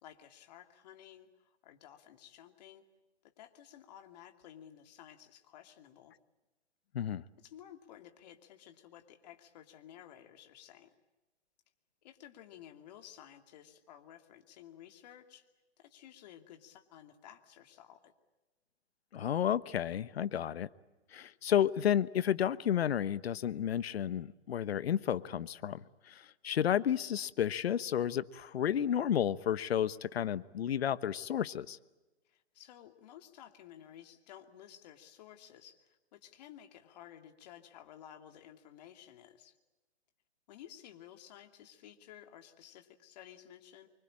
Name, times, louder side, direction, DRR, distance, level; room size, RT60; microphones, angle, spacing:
voice 1, 0.0-2.8 3.4-6.1 7.4-10.9 12.0-15.4 15.8-18.1 32.3-39.6 40.5-43.9, left 11 dB, 35° left, 6 dB, 2.6 m, -54 dB
voice 2, 19.1-20.7 21.1-31.8, left 9 dB, 65° left, 16 dB, 1.1 m, -32 dB
25.5 x 24.5 x 8.8 m, 1.1 s
hypercardioid pair, 155°, 34 cm